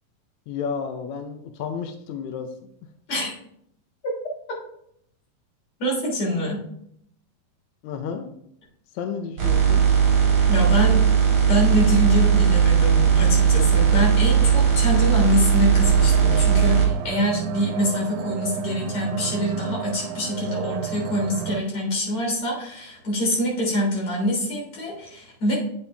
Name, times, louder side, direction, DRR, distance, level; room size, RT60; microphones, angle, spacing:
voice 1, 0.5-2.5 7.8-8.3 8.9-9.8, left 6 dB, 75° left, 5 dB, 1.7 m, -31 dB
voice 2, 5.8-6.6 10.5-11.0 11.5-25.6, left 1 dB, 50° left, -3 dB, 4.6 m, -25 dB
sound 1, 9.4-16.9, right 7 dB, 40° right, 2.7 m, -18 dB
sound 2, 15.8-21.6, right 12 dB, 90° right, 2.3 m, -32 dB
8.8 x 7.1 x 3.4 m, 0.72 s
omnidirectional pair, 4.0 m